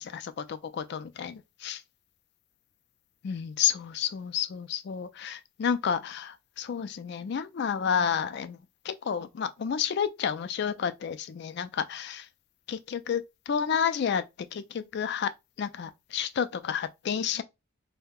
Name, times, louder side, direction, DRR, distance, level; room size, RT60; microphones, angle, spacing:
voice 1, 0.0-1.8 3.2-8.6 8.9-12.2 12.7-14.2 14.5-15.3 15.6-17.4, left 7 dB, 50° left, 0.3 m, -30 dB
2.6 x 2.1 x 3.6 m
head